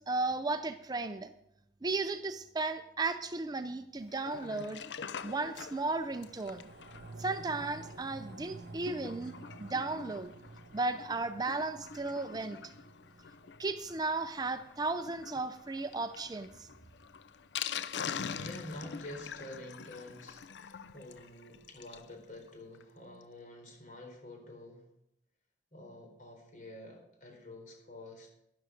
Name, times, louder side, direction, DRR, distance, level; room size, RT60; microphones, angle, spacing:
voice 1, 0.0-1.3 1.8-4.8 5.2-6.7 7.2-10.3 10.7-12.7 13.6-16.7, right 3 dB, 25° right, 10 dB, 0.5 m, -35 dB
Sink (filling or washing), 4.1-22.1 22.5-22.6 22.7-22.8 23.2-23.3, left 7 dB, 75° left, 0.5 m, -45 dB
sound 1, 5.8-16.4 16.8-16.9, right 2 dB, 70° right, 0.7 m, -52 dB
voice 2, 17.9-24.8 25.7-28.3, left 1 dB, 45° left, 2 dB, 4.1 m, -48 dB
12.5 x 11.5 x 5.1 m, 0.80 s
head